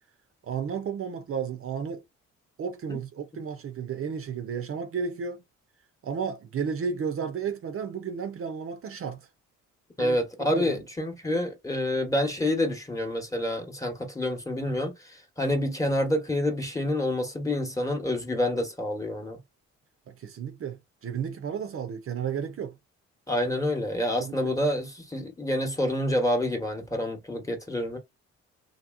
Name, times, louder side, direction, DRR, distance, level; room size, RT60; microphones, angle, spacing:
voice 1, 0.5-2.0 2.6-5.4 6.0-9.2 10.0-10.8 20.1-22.7 24.2-24.5, right 6 dB, 45° right, 0.6 m, -33 dB
voice 2, 10.0-19.4 23.3-28.0, left 1 dB, 10° left, 1.0 m, -28 dB
2.9 x 2.7 x 2.5 m
cardioid pair, 90°, 30 cm